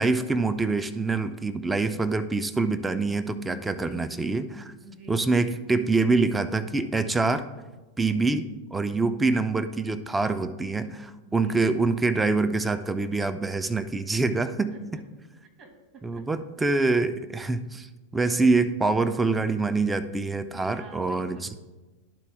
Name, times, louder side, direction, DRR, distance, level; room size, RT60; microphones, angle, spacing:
voice 1, 0.0-4.7 5.1-7.5 8.0-14.8 16.0-17.9 18.1-21.5, right 3 dB, 10° right, 11 dB, 0.4 m, -25 dB
voice 2, 3.7-4.1 4.8-5.2 8.1-8.4 11.3-11.6 14.3-14.4 14.7-15.0 15.6-16.3 20.5-21.6, right 3 dB, 30° right, 3 dB, 1.3 m, -48 dB
11.5 x 4.0 x 3.5 m, 1.2 s
figure-of-eight pair, 90°, 0 cm